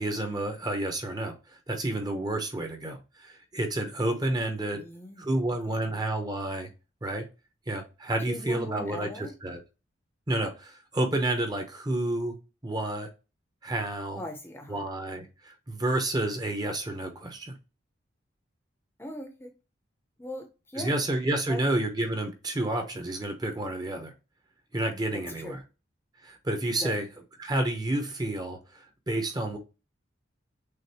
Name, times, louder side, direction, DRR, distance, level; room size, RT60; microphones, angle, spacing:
voice 1, 0.0-4.8 5.2-6.7 7.0-7.3 7.7-9.6 10.3-13.1 13.6-14.2 14.7-17.5 20.8-24.1 24.7-25.6 26.2-27.1 27.4-29.6, right 1 dB, 20° right, 0.8 m, -30 dB
voice 2, 4.7-5.3 8.3-9.3 14.1-14.8 19.0-19.5 20.2-20.9 21.5-21.6 25.1-25.6 26.8-26.9, left 1 dB, 10° left, 0.7 m, -39 dB
6.4 x 2.5 x 2.8 m
head